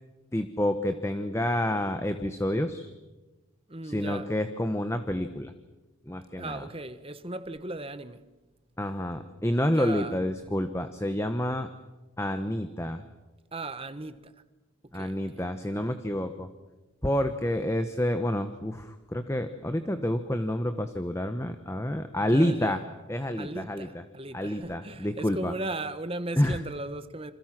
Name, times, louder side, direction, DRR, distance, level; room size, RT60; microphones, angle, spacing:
voice 1, 0.3-2.9 3.8-5.5 6.1-6.6 8.8-11.7 12.2-13.0 14.9-16.5 17.0-22.8 23.1-23.9 24.3-25.5 26.4-26.6, left 1 dB, 15° left, 1.2 m, -28 dB
voice 2, 3.7-4.3 6.4-8.2 9.7-10.2 13.5-14.3 14.9-15.4 22.2-22.8 23.4-27.3, right 2 dB, 25° right, 1.3 m, -37 dB
29.0 x 27.0 x 6.1 m
head